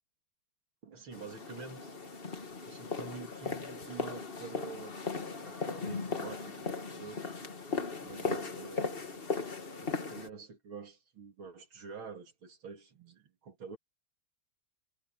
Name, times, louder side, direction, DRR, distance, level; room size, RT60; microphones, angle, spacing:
voice 1, 0.8-1.9 2.7-5.0 5.4-7.3 8.0-9.2 9.8-13.8, right 5 dB, 75° right, 3.4 m, -47 dB
sound 1, 1.1-10.3, left 4 dB, 30° left, 1.6 m, -38 dB
omnidirectional pair, 2.3 m